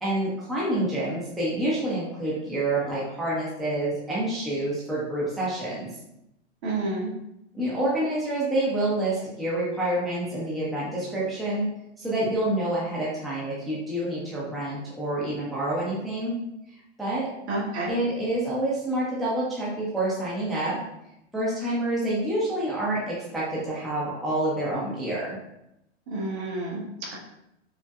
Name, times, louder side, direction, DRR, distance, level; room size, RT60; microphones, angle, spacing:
voice 1, 0.0-5.9 7.5-11.7 12.0-16.3 17.0-17.3 17.9-20.8 21.3-25.4, right 1 dB, ahead, -7 dB, 0.5 m, -27 dB
voice 2, 6.6-7.1 17.5-17.9 26.1-26.8, right 2 dB, 65° right, -4 dB, 1.5 m, -29 dB
5.4 x 2.1 x 2.4 m, 0.83 s
hypercardioid pair, 135°, 36 cm